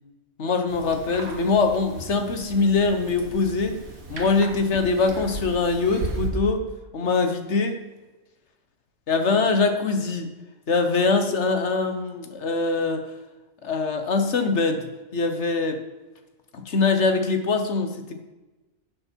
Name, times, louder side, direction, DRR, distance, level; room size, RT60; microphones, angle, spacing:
voice 1, 0.4-3.8 4.1-6.6 6.9-7.8 9.1-10.3 10.7-13.1 13.6-15.8 16.5-18.1, left 4 dB, 55° left, 6 dB, 1.4 m, -23 dB
sound 1, 0.7-6.3, right 2 dB, 80° right, 2.1 m, -36 dB
11.5 x 7.5 x 4.5 m, 1.1 s
omnidirectional pair, 1.5 m